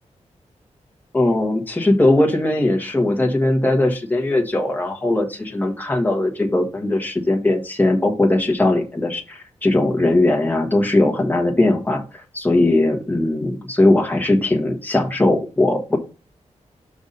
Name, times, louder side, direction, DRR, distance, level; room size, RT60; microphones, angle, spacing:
voice 1, 1.1-16.0, left 2 dB, 15° left, 2 dB, 1.5 m, -19 dB
5.9 x 4.0 x 5.4 m, 0.31 s
wide cardioid pair, 110°, 12 cm